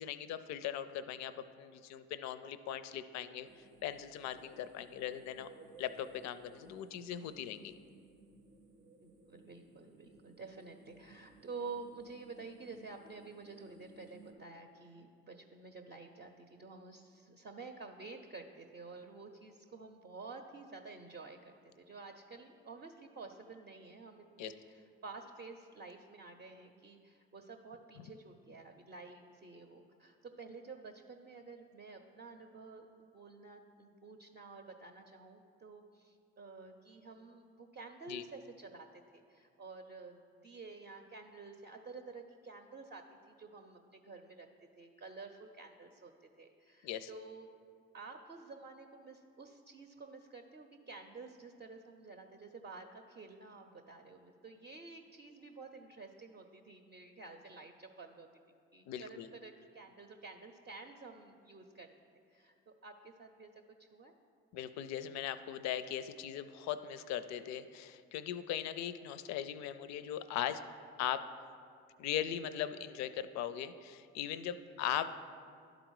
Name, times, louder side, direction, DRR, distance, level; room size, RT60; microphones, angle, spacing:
voice 1, 0.0-3.5 3.8-5.5 5.8-7.8 24.4-24.5 28.0-28.1 38.1-38.2 46.8-47.1 58.9-59.3 64.5-70.6 71.0-71.3 72.0-75.1, left 10 dB, 65° left, 13 dB, 0.4 m, -39 dB
sound 1, 3.4-14.3, right 3 dB, 80° right, 0.8 m, -60 dB
voice 2, 9.0-32.9 33.1-44.5 44.8-46.1 46.4-47.5 47.9-58.3 58.7-61.9 62.3-63.5 63.8-64.1 74.7-74.8, right 4 dB, 35° right, 3 dB, 0.6 m, -50 dB
11.5 x 3.9 x 4.6 m, 2.3 s
hypercardioid pair, 55°, 29 cm